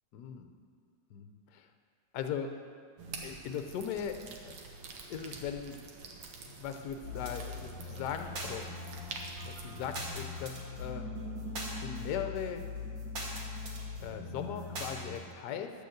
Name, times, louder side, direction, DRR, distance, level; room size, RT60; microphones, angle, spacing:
voice 1, 0.1-0.5 1.1-1.7 2.1-2.5 3.2-4.2 4.4-4.5 5.1-5.8 6.6-8.7 9.5-11.1 11.8-12.7 14.0-15.7, left 8 dB, 65° left, 7 dB, 1.2 m, -39 dB
sound 1, 3.0-10.1, right 4 dB, 80° right, 2.0 m, -47 dB
sound 2, 7.0-15.2, left 2 dB, 60° right, 2.7 m, -40 dB
10.5 x 6.7 x 7.9 m, 2.2 s
omnidirectional pair, 2.2 m